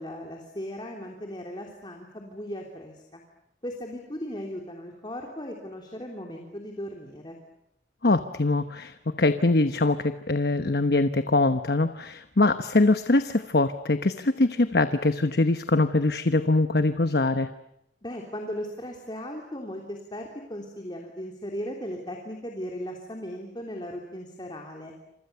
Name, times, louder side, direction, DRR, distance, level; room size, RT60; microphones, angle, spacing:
voice 1, 0.0-3.2 3.6-7.4 18.0-24.9, equal, 25° left, 1 dB, 3.3 m, -37 dB
voice 2, 8.0-17.5, left 2 dB, 60° left, 9 dB, 1.0 m, -23 dB
29.0 x 27.5 x 6.9 m, 0.80 s
head